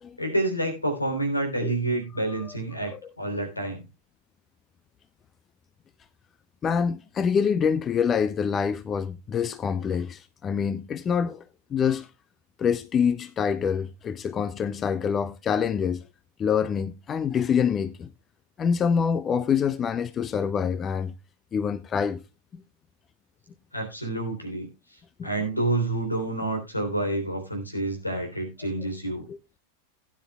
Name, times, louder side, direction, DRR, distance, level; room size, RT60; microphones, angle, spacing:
voice 1, 0.2-3.8 23.7-24.7 25.2-29.3, right 2 dB, 85° left, 3.4 m, -28 dB
voice 2, 6.6-11.4 11.7-12.1 12.6-16.0 16.4-18.1 18.6-21.1 21.5-22.2 25.2-25.3 29.3-29.4, left 7 dB, 25° left, 0.6 m, -26 dB
16.5 x 9.8 x 2.3 m
figure-of-eight pair, 90°, 0 cm